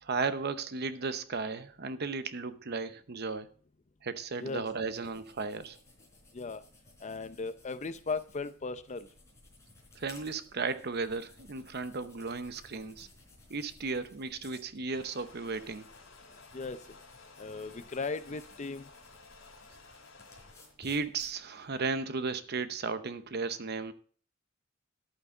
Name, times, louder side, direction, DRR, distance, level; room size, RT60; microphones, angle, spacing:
voice 1, 0.0-3.5 4.0-5.8 10.0-13.1 13.5-15.9 20.8-23.9, right 4 dB, 55° right, 0.8 m, -35 dB
sound 1, 4.3-21.8, left 2 dB, 15° left, 3.9 m, -59 dB
voice 2, 7.0-9.1 16.5-16.8 17.4-18.9, left 4 dB, 35° left, 0.6 m, -37 dB
sound 2, 14.9-20.7, left 4 dB, 70° left, 3.0 m, -55 dB
11.0 x 8.6 x 3.9 m
head